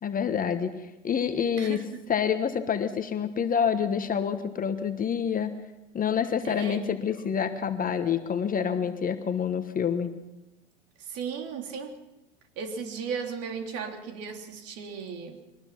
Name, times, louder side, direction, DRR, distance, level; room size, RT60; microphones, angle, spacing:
voice 1, 0.0-1.8 2.1-5.6 5.9-10.1, left 7 dB, 25° left, 8 dB, 1.3 m, -27 dB
voice 2, 1.6-2.0 6.4-7.3 11.0-12.0 12.5-15.4, right 6 dB, 40° right, 4 dB, 3.3 m, -36 dB
24.0 x 19.5 x 5.8 m, 1.0 s
hypercardioid pair, 90°, 35 cm